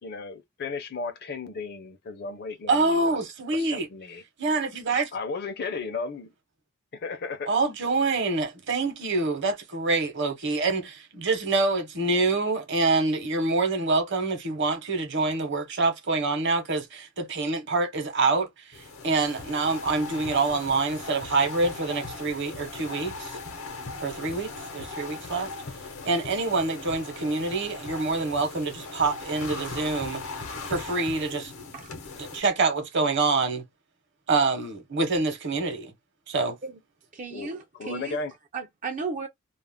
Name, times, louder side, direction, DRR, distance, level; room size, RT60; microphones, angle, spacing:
voice 1, 0.0-3.2 3.5-4.2 5.1-6.3 6.9-7.5 37.3-37.5 37.8-38.3, left 4 dB, 50° left, 0.6 m, -34 dB
voice 2, 2.7-3.9 4.4-5.1 7.5-23.3 24.0-25.5 26.0-30.2 30.7-31.5 32.2-33.7 34.3-35.9 36.3-36.6, right 3 dB, 55° right, 0.9 m, -26 dB
sound 1, 18.7-32.4, left 3 dB, 75° left, 0.8 m, -39 dB
voice 3, 37.1-38.2 38.5-39.3, right 4 dB, 35° right, 0.4 m, -34 dB
2.4 x 2.0 x 3.4 m
head